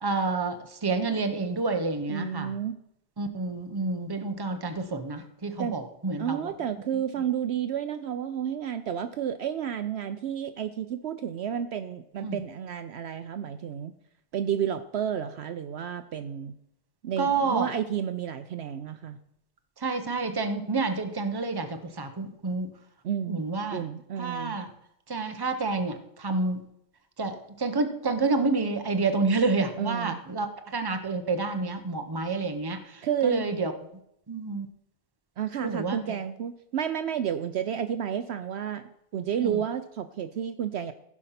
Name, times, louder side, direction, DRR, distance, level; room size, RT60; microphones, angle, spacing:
voice 1, 0.0-2.6 3.2-6.5 12.2-12.4 17.2-17.7 19.8-22.7 23.3-23.8 24.2-24.7 25.1-26.6 27.2-33.7 34.3-34.7 35.6-36.2 39.4-39.6, right 3 dB, 20° right, 7 dB, 0.9 m, -29 dB
voice 2, 2.1-2.8 5.6-5.8 6.2-13.9 14.3-16.5 17.0-19.2 23.0-23.4 23.7-24.6 29.8-30.2 33.0-33.4 35.4-40.9, right 9 dB, 65° right, 11 dB, 0.8 m, -31 dB
15.5 x 5.3 x 5.8 m, 0.78 s
omnidirectional pair, 1.3 m